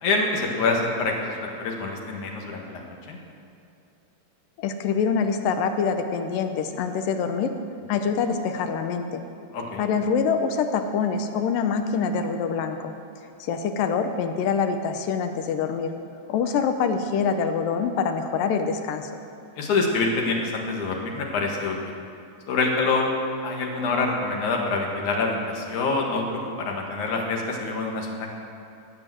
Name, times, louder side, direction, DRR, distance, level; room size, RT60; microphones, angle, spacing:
voice 1, 0.0-3.2 9.5-9.8 19.6-21.8 22.5-23.1 23.4-28.4, left 3 dB, 65° left, 0 dB, 2.8 m, -26 dB
voice 2, 4.6-7.5 7.9-9.2 9.8-12.9 13.4-15.9 16.3-19.1, left 6 dB, 80° left, 7 dB, 2.4 m, -25 dB
18.5 x 6.8 x 7.7 m, 2.5 s
omnidirectional pair, 4.0 m